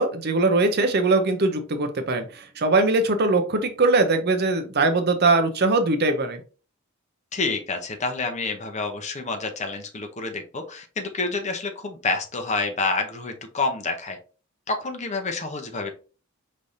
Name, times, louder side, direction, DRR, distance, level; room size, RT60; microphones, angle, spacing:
voice 1, 0.0-6.4, right 3 dB, 55° right, 8 dB, 0.7 m, -21 dB
voice 2, 7.3-14.2 14.7-15.9, left 3 dB, 35° left, 5 dB, 0.8 m, -28 dB
5.3 x 3.3 x 2.7 m, 0.35 s
head